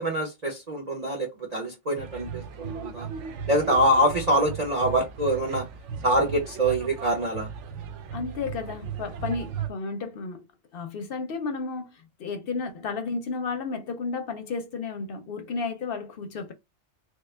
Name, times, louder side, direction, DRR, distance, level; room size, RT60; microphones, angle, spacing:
voice 1, 0.0-3.1 3.5-5.6 6.0-7.5, right 1 dB, 40° right, 0.7 m, -25 dB
sound 1, 2.0-9.7, right 7 dB, 85° right, 1.0 m, -37 dB
voice 2, 8.1-10.5 10.7-16.5, left 4 dB, 60° left, 0.7 m, -32 dB
3.2 x 2.2 x 3.2 m
omnidirectional pair, 1.2 m